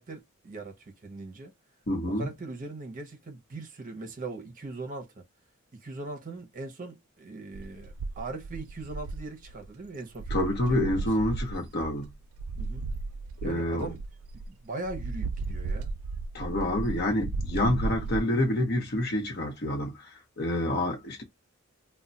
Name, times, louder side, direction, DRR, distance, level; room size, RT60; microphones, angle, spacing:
voice 1, 0.0-1.5 2.1-5.3 5.7-11.1 12.6-12.9 13.4-14.0 14.5-15.9 17.5-17.7, right 3 dB, 40° right, 0.7 m, -40 dB
voice 2, 1.9-2.3 10.3-12.1 13.4-13.9 16.3-20.1 20.4-21.2, left 1 dB, 50° left, 0.8 m, -28 dB
sound 1, 7.5-9.8 10.2-14.5 14.9-18.2, right 3 dB, 90° right, 0.3 m, -35 dB
2.2 x 2.1 x 3.8 m
head